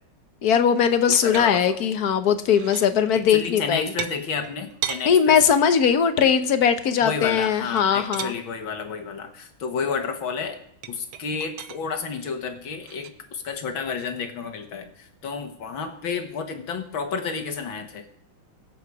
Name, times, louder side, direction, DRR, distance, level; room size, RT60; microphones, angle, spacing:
voice 1, 0.4-3.9 5.0-8.3, left 7 dB, 55° left, 10 dB, 1.4 m, -20 dB
sound 1, 0.9-1.9 2.3-3.0 4.0-5.1 7.3-8.4 10.8-11.8 12.8-13.1, right 11 dB, 80° right, 1.6 m, -35 dB
voice 2, 1.1-1.8 3.2-5.4 7.0-10.6 10.9-18.1, left 5 dB, 75° left, 6 dB, 2.4 m, -31 dB
23.0 x 8.2 x 4.8 m, 0.71 s
omnidirectional pair, 2.2 m